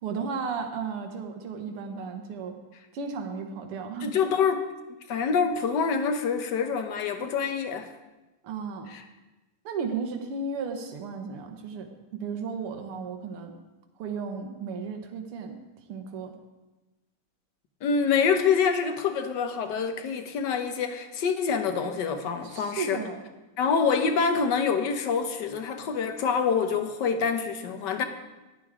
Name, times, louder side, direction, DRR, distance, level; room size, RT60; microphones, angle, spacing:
voice 1, 0.0-2.5 2.9-4.5 8.4-8.9 9.7-13.5 14.0-15.6 15.9-16.3 22.4-23.2, right 5 dB, 80° right, 4 dB, 2.1 m, -34 dB
voice 2, 4.0-4.7 5.1-7.9 8.9-9.0 17.8-23.0 23.6-28.0, left 6 dB, 60° left, 7 dB, 1.5 m, -26 dB
15.0 x 11.0 x 3.7 m, 1.1 s
omnidirectional pair, 2.4 m